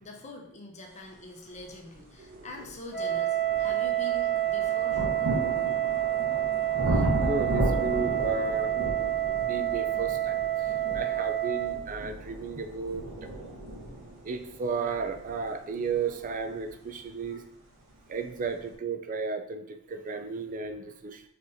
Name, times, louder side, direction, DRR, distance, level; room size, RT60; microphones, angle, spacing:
voice 1, 0.0-5.0 17.3-17.4, left 1 dB, 30° left, 1 dB, 0.7 m, -44 dB
sound 1, 2.0-2.1 2.7-17.3 18.2-18.3, right 1 dB, 65° right, 1.2 m, -34 dB
voice 2, 2.2-2.7 3.7-3.8 6.9-8.7 9.4-13.0 14.2-17.4 18.1-21.2, right 4 dB, 35° right, 7 dB, 0.4 m, -34 dB
Wind instrument woodwind instrument, 2.9-11.8, right 13 dB, ahead, 1.2 m, -28 dB
4.3 x 3.9 x 2.6 m, 0.76 s
head